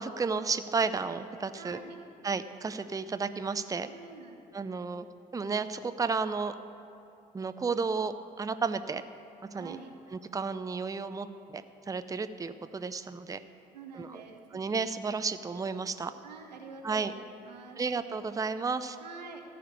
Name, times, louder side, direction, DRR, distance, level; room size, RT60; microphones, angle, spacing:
voice 1, 0.0-1.8 2.2-3.9 4.5-5.1 5.3-6.5 7.3-9.0 9.5-9.8 10.1-13.4 13.9-14.2 14.5-16.1 16.8-17.1 17.8-19.0, right 4 dB, 15° right, 11 dB, 0.5 m, -32 dB
voice 2, 1.6-2.0 3.9-4.4 9.5-10.0 13.7-14.6 16.2-17.8 19.0-19.4, right 4 dB, 90° right, 3 dB, 0.9 m, -47 dB
14.0 x 5.1 x 9.2 m, 2.7 s
hypercardioid pair, 50°, 21 cm